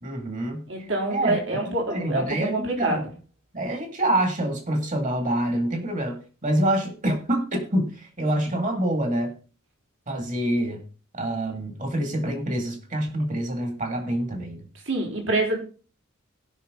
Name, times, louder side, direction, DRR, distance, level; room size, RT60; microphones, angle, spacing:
voice 1, 0.0-3.1 3.5-9.3 10.1-10.8 11.1-14.7, right 1 dB, 40° right, 5 dB, 2.3 m, -26 dB
voice 2, 0.7-3.0 14.8-15.6, right 2 dB, 65° right, 1 dB, 3.4 m, -26 dB
17.0 x 5.9 x 3.9 m, 0.36 s
head